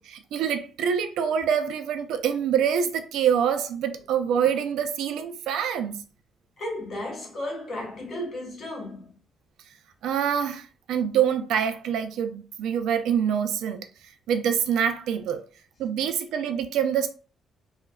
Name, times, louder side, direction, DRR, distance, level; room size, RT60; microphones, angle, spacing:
voice 1, 0.0-6.0 10.0-13.8 14.3-15.4 15.8-17.1, right 8 dB, 80° right, 0.3 m, -25 dB
voice 2, 6.6-9.1, left 1 dB, 40° left, 0.9 m, -34 dB
3.1 x 2.1 x 2.2 m
cardioid pair, 175°, 0 cm